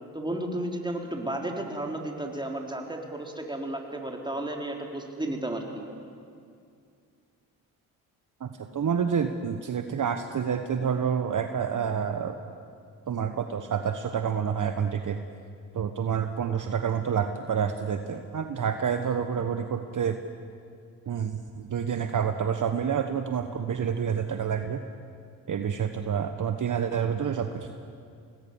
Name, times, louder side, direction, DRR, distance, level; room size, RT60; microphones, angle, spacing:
voice 1, 0.1-5.6, right 1 dB, 10° right, 1 dB, 4.0 m, -33 dB
voice 2, 8.4-12.4 13.1-15.2 15.7-20.2 21.1-24.8 25.5-27.7, right 7 dB, 50° right, 7 dB, 1.2 m, -28 dB
25.5 x 19.0 x 7.2 m, 2.3 s
supercardioid pair, 55°, 39 cm